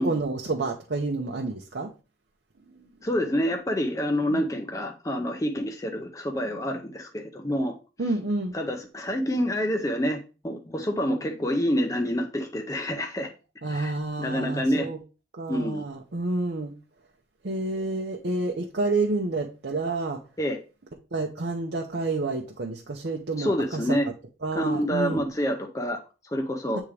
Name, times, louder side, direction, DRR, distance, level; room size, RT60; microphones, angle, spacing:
voice 1, 0.0-1.9 4.3-4.4 8.0-8.5 13.6-15.0 15.4-16.7 17.4-20.2 21.1-24.0 24.4-25.2 26.7-26.8, right 2 dB, 65° right, 0.7 m, -29 dB
voice 2, 3.0-7.7 8.5-13.3 13.7-14.9 15.5-15.8 20.4-20.6 23.4-24.1 24.5-26.8, equal, 20° left, 0.6 m, -27 dB
8.2 x 3.6 x 3.3 m
head